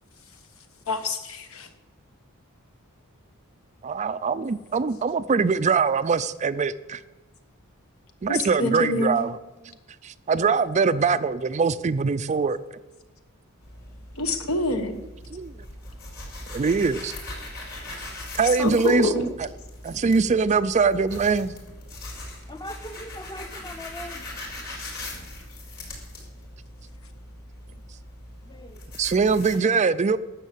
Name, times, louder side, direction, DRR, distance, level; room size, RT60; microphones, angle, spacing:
voice 1, 0.9-1.7 8.3-9.2 14.2-14.9 18.6-19.1, left 2 dB, 65° left, 1.3 m, -26 dB
voice 2, 3.8-7.0 8.2-9.4 10.0-12.6 15.3-15.5 16.5-17.1 18.4-19.5 19.8-21.5 29.0-30.2, right 5 dB, 30° right, 0.4 m, -23 dB
sound 1, 13.6-29.6, left 1 dB, 50° left, 5.0 m, -40 dB
voice 3, 22.5-24.2 28.5-28.8, left 1 dB, 20° left, 0.8 m, -40 dB
12.0 x 7.3 x 8.3 m
head